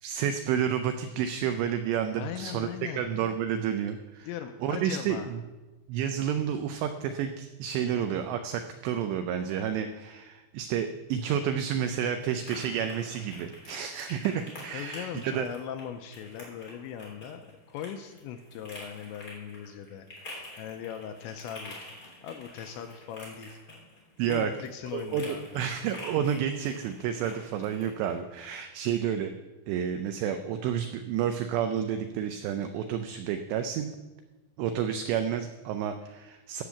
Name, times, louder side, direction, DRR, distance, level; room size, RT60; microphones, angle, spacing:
voice 1, 0.0-2.7 3.0-4.3 4.6-5.4 5.9-15.5 24.2-24.5 24.9-29.3 29.7-33.9 34.6-36.6, right 8 dB, 90° right, 7 dB, 2.5 m, -30 dB
voice 2, 2.1-3.1 4.2-5.3 14.7-17.4 17.7-23.6 24.3-25.5, left 9 dB, 85° left, 6 dB, 2.6 m, -39 dB
sound 1, 11.0-28.2, left 1 dB, 25° left, 3.2 m, -48 dB
15.0 x 6.3 x 7.1 m, 1.2 s
omnidirectional pair, 5.7 m